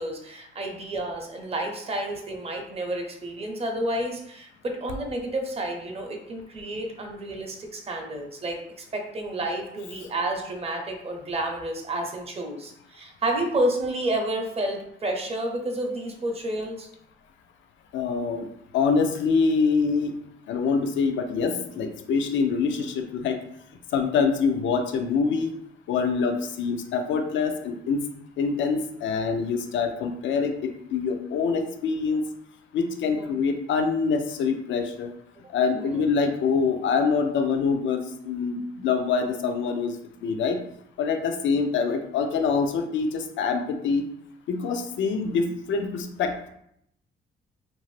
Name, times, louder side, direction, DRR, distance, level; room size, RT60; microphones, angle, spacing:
voice 1, 0.0-8.6 8.9-16.9 33.1-33.3 35.7-36.0, right 1 dB, 30° right, 2 dB, 0.7 m, -30 dB
voice 2, 17.9-18.5 18.7-20.1 20.5-23.4 23.9-25.5 25.9-28.0 28.4-30.5 30.9-32.2 32.7-35.1 35.5-40.0 40.2-40.6 41.0-44.0 44.5-46.5, left 5 dB, 70° left, 5 dB, 0.5 m, -25 dB
2.6 x 2.4 x 3.1 m, 0.72 s
cardioid pair, 90°, 20 cm